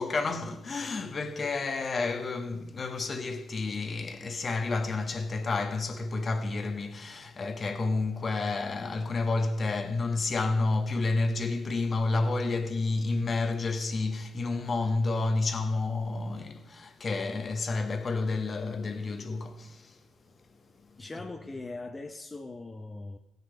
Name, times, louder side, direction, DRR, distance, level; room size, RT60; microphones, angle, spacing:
voice 1, 0.0-20.0, left 3 dB, 45° left, 1.1 m, -30 dB
voice 2, 21.0-23.2, left 2 dB, 25° left, 0.8 m, -40 dB
16.0 x 6.8 x 5.0 m
hypercardioid pair, 50°, 0 cm